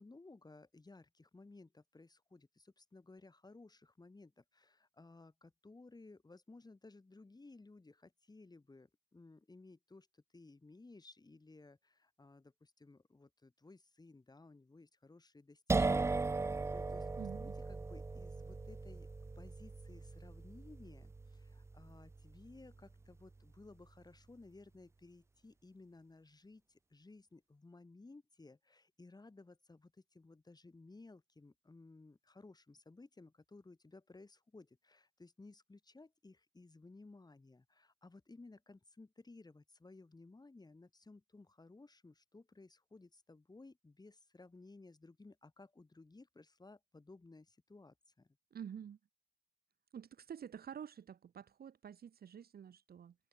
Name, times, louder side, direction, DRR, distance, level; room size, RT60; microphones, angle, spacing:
voice 1, 0.0-17.1 17.4-19.1 19.3-48.3, left 3 dB, 20° left, 6.6 m, -58 dB
sound 1, 15.7-23.3, right 3 dB, 15° right, 0.4 m, -38 dB
voice 2, 17.2-17.5 48.5-49.0 49.9-53.1, right 8 dB, 50° right, 1.6 m, -49 dB
cardioid pair, 90°, 20 cm